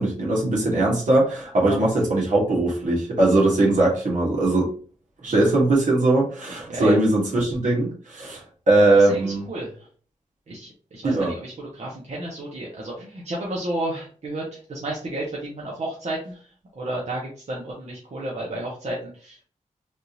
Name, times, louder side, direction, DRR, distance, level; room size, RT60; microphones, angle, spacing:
voice 1, 0.0-4.7 5.2-9.4 11.0-11.3, right 2 dB, 75° right, -3 dB, 1.4 m, -20 dB
voice 2, 6.7-7.0 8.8-9.9 10.5-16.5 16.7-19.4, right 1 dB, 55° right, -4 dB, 1.0 m, -32 dB
3.5 x 2.5 x 2.8 m, 0.42 s
wide cardioid pair, 105°, 13 cm